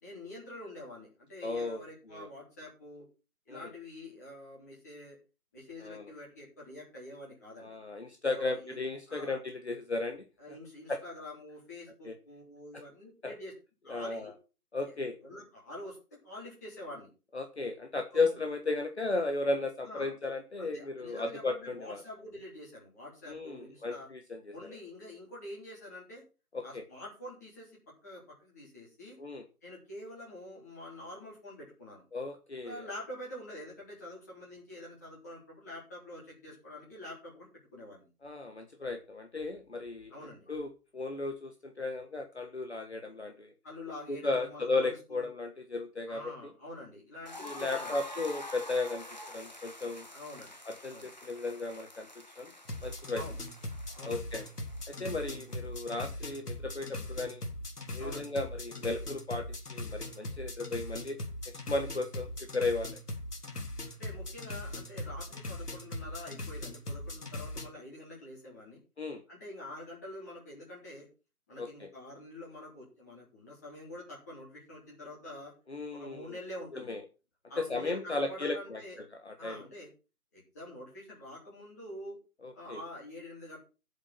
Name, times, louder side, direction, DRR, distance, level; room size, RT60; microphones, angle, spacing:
voice 1, 0.0-3.1 3.5-5.2 5.5-7.7 8.3-8.8 9.1-9.4 10.4-13.5 13.8-14.3 14.9-15.0 15.2-16.0 16.2-17.1 18.1-18.4 19.9-20.1 20.6-24.1 24.5-26.2 26.6-27.7 28.0-29.2 29.6-32.0 32.6-38.1 40.1-40.5 43.6-45.3 46.1-48.0 50.1-50.5 50.9-51.1 53.2-53.4 53.9-54.2 58.0-58.3 64.0-68.8 69.3-71.1 71.5-75.5 75.9-77.0 77.5-79.0 79.4-79.9 80.3-82.2 82.5-83.6, left 1 dB, 10° left, -5 dB, 3.5 m, -46 dB
voice 2, 1.4-2.3 3.5-3.7 5.8-6.1 7.6-10.2 10.9-11.0 12.0-12.1 13.2-13.3 13.9-14.3 14.7-15.2 17.3-22.0 23.3-24.5 26.5-26.8 29.2-29.4 32.1-32.8 38.2-40.1 40.5-43.5 44.1-46.5 47.4-50.1 50.7-52.1 52.4-52.5 52.8-53.2 54.0-54.5 54.9-57.5 57.9-61.2 61.7-63.0 69.0-69.2 71.6-71.9 75.7-76.4 76.7-77.0 77.6-79.6 82.4-82.8, left 3 dB, 45° left, 6 dB, 1.5 m, -35 dB
sound 1, 47.3-56.0, left 1 dB, 30° left, 1.2 m, -47 dB
sound 2, 52.7-67.7, left 1 dB, 90° left, 3.4 m, -40 dB
13.5 x 7.4 x 6.0 m, 0.32 s
figure-of-eight pair, 180°, 45 cm